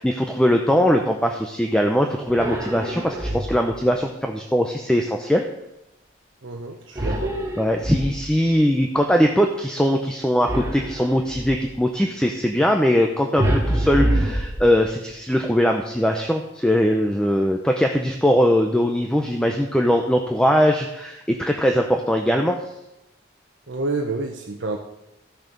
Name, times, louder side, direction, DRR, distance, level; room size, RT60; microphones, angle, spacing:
voice 1, 0.0-5.4 7.0-7.1 7.6-22.6, equal, 5° left, 3 dB, 0.6 m, -21 dB
sound 1, 2.3-3.8 6.9-8.5 10.4-11.7 13.4-15.1, right 1 dB, 15° right, 1.5 m, -25 dB
voice 2, 6.4-7.4 23.7-24.8, right 3 dB, 70° right, 1 dB, 0.9 m, -28 dB
14.0 x 6.4 x 5.2 m, 0.91 s
head